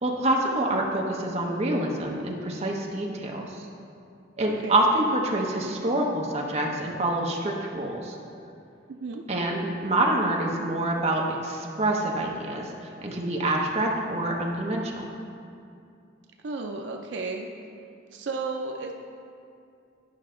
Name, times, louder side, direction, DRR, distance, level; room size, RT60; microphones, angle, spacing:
voice 1, 0.0-3.5 4.4-8.2 9.3-12.7 13.0-15.0, right 1 dB, 35° right, -1 dB, 0.9 m, -26 dB
voice 2, 8.9-9.2 16.4-17.5 18.1-18.9, right 3 dB, 80° right, 3 dB, 0.5 m, -33 dB
10.5 x 5.6 x 3.8 m, 2.5 s
head